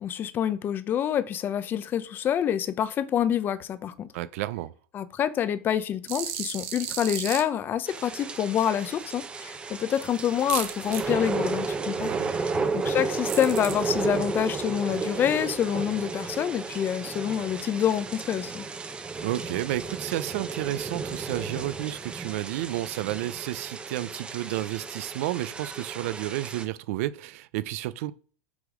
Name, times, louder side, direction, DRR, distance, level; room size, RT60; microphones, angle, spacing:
voice 1, 0.0-4.1 4.9-12.1 12.7-18.7, left 9 dB, 25° left, 0.6 m, -27 dB
voice 2, 4.1-4.7 11.9-12.7 19.2-28.1, right 15 dB, 60° right, 0.5 m, -31 dB
sound 1, 6.1-7.4 10.5-11.0 13.3-13.7, right 10 dB, 45° right, 1.6 m, -33 dB
sound 2, 7.9-26.7, right 4 dB, 10° right, 0.7 m, -33 dB
6.0 x 3.9 x 6.2 m
supercardioid pair, 155°, 8 cm